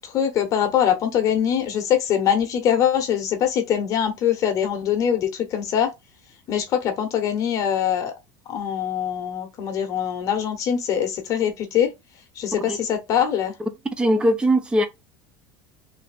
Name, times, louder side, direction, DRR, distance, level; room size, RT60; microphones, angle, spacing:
voice 1, 0.0-5.9 6.5-8.1 8.5-11.9 12.4-13.5, left 9 dB, 35° left, 0.9 m, -23 dB
voice 2, 14.0-14.9, right 1 dB, 10° right, 0.5 m, -20 dB
3.3 x 2.7 x 4.1 m
cardioid pair, 160°, 10 cm